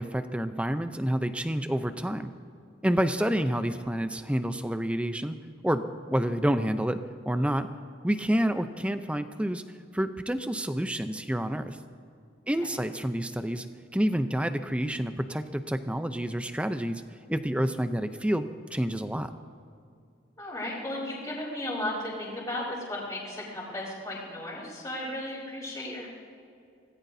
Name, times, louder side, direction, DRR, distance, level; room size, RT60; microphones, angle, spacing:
voice 1, 0.0-2.3 2.8-5.3 5.6-7.0 7.3-7.7 8.0-9.6 9.9-11.8 12.5-13.7 13.9-17.0 17.3-19.3, equal, 5° right, 9 dB, 0.6 m, -28 dB
voice 2, 20.4-26.1, left 1 dB, 15° left, -8 dB, 3.8 m, -35 dB
24.5 x 18.0 x 2.7 m, 2.4 s
head